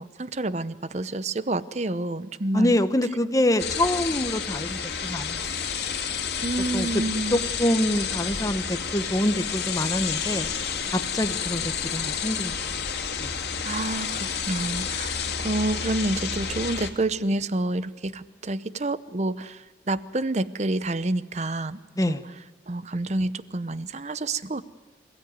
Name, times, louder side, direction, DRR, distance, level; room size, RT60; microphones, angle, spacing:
voice 1, 0.0-2.7 6.4-7.4 13.6-21.8 22.1-22.2 22.7-24.6, right 2 dB, 40° right, 15 dB, 0.7 m, -28 dB
voice 2, 2.5-5.4 6.7-7.0 7.3-10.5 10.9-12.6 13.2-13.3 22.0-22.2, left 1 dB, 20° left, 11 dB, 1.0 m, -25 dB
sound 1, 3.6-16.9, left 6 dB, 65° left, 2.3 m, -30 dB
27.0 x 16.5 x 9.5 m, 1.3 s
head